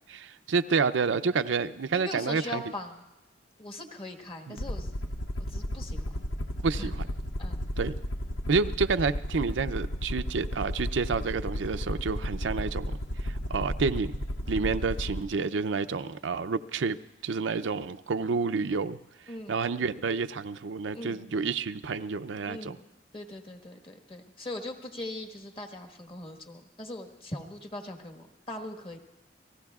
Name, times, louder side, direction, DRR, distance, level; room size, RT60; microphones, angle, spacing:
voice 1, 0.1-2.6 4.5-4.6 6.6-7.1 7.8-8.0 8.5-12.9 13.2-17.0 17.2-19.0 19.5-22.8, right 4 dB, 85° right, 10 dB, 0.5 m, -29 dB
voice 2, 1.9-3.1 3.6-4.9 5.5-6.0 6.8-6.9 7.4-7.6 19.3-19.6 20.9-21.2 22.5-22.8 23.1-29.0, left 1 dB, 30° left, 4 dB, 1.4 m, -40 dB
Aircraft, 4.6-15.2, equal, 90° left, 0.8 m, -33 dB
29.0 x 18.5 x 2.4 m, 1.0 s
head